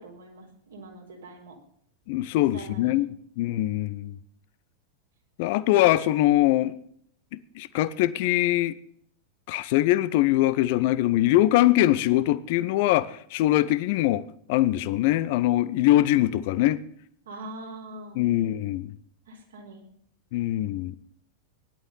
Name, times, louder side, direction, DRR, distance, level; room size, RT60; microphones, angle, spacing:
voice 1, 0.0-1.6 2.3-3.0 17.2-18.2 19.3-19.8, right 2 dB, 65° right, 4.4 m, -43 dB
voice 2, 2.1-3.1 3.4-4.2 5.4-6.7 7.3-8.8 9.5-14.2 14.5-16.8 18.2-18.9 20.3-21.0, left 15 dB, 50° left, 0.8 m, -22 dB
16.5 x 11.5 x 5.5 m
figure-of-eight pair, 90°, 0 cm